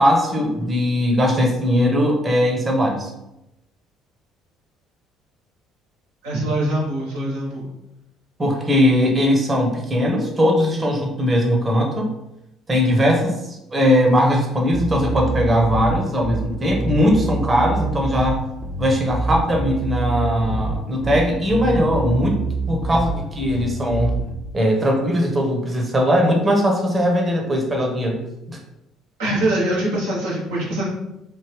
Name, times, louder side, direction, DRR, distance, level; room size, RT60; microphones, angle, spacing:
voice 1, 0.0-3.1 8.4-12.1 12.7-18.4 18.8-24.2 24.5-28.2 28.5-28.6, equal, 25° right, 1 dB, 1.0 m, -19 dB
voice 2, 6.2-7.7 29.2-30.9, right 1 dB, 75° right, -6 dB, 1.0 m, -23 dB
Bass guitar, 14.7-24.3, right 3 dB, 20° left, 0.8 m, -26 dB
3.5 x 2.6 x 3.1 m, 0.89 s
figure-of-eight pair, 55°, 0 cm